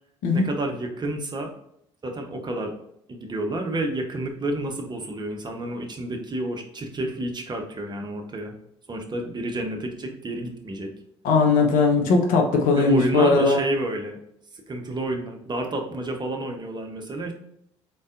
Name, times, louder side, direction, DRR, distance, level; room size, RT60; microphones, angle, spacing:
voice 1, 0.3-1.5 2.0-2.7 3.1-8.5 8.9-10.9 12.7-14.2 14.5-17.3, right 1 dB, 30° right, 3 dB, 0.9 m, -30 dB
voice 2, 11.2-13.6, left 4 dB, 60° left, 2 dB, 0.8 m, -19 dB
3.9 x 3.8 x 2.5 m, 0.74 s
figure-of-eight pair, 50°, 15 cm